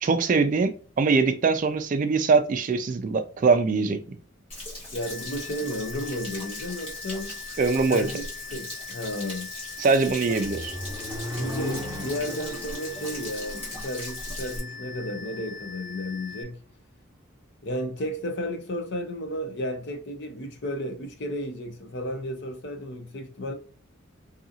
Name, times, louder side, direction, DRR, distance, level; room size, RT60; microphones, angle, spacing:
voice 1, 0.0-4.2 7.6-8.1 9.8-10.7, right 4 dB, 40° right, 0.3 m, -22 dB
Stream / Splash splatter / Trickle dribble, 4.5-14.6, left 1 dB, 30° left, 1.3 m, -39 dB
voice 2, 4.9-7.3 7.9-9.5 11.3-16.6 17.6-23.5, equal, 55° left, 0.6 m, -33 dB
sound 1, 5.0-16.4, left 6 dB, 55° right, 0.7 m, -42 dB
Accelerating revving vroom, 9.8-15.8, equal, 20° right, 0.7 m, -38 dB
2.7 x 2.5 x 2.7 m
head